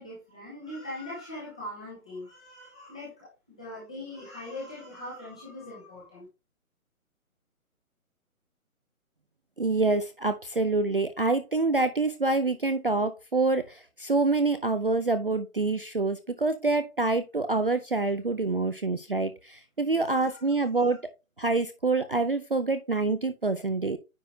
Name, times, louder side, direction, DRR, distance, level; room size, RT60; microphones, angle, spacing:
voice 1, 0.0-6.3 19.8-20.4, left 1 dB, 5° left, -7 dB, 0.8 m, -41 dB
voice 2, 9.6-21.0 21.4-24.0, right 3 dB, 40° right, 10 dB, 0.5 m, -26 dB
9.4 x 4.1 x 3.2 m, 0.26 s
hypercardioid pair, 170°, 43 cm